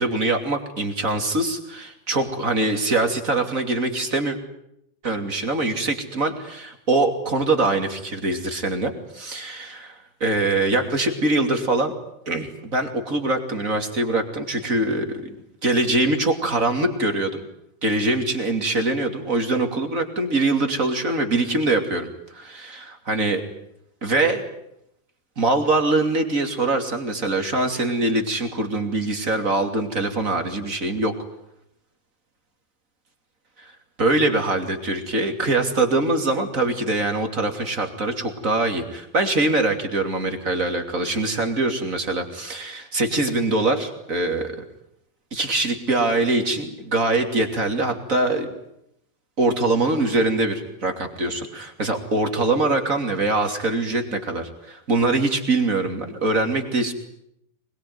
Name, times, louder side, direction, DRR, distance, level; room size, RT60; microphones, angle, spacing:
voice 1, 0.0-4.4 5.0-11.9 12.3-15.3 15.6-17.4 17.8-23.4 24.0-24.4 25.4-31.1 33.6-33.7 34.0-44.6 45.3-48.5 49.4-56.9, right 2 dB, 25° right, 5 dB, 2.7 m, -23 dB
24.5 x 21.5 x 9.5 m, 0.77 s
omnidirectional pair, 4.3 m